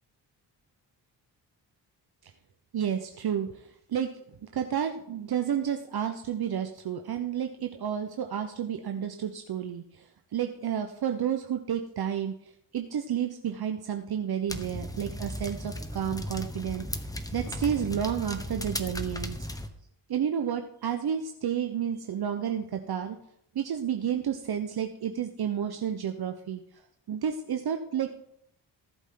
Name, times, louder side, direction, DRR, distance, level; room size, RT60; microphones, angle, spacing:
voice 1, 2.7-4.1 4.4-12.3 12.7-16.8 17.3-19.4 20.1-23.2 23.5-26.6 27.1-28.1, right 8 dB, 55° right, 5 dB, 1.0 m, -31 dB
sound 1, 14.5-19.7, left 1 dB, 10° left, 1.3 m, -36 dB
18.5 x 8.1 x 3.9 m, 0.71 s
cardioid pair, 65°, 44 cm